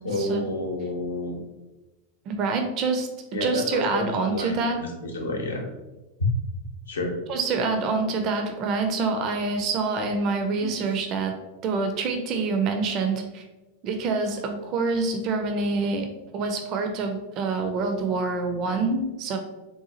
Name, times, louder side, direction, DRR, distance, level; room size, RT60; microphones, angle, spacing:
voice 1, 0.0-1.4 3.3-5.7 6.9-7.2 10.6-10.7, left 1 dB, 70° left, 1 dB, 0.7 m, -30 dB
voice 2, 2.3-3.1 3.4-4.8 7.3-11.4 11.6-13.4 13.8-16.1 16.3-19.4, right 4 dB, 40° right, 5 dB, 0.4 m, -26 dB
3.7 x 2.4 x 2.7 m, 1.1 s
figure-of-eight pair, 90°, 0 cm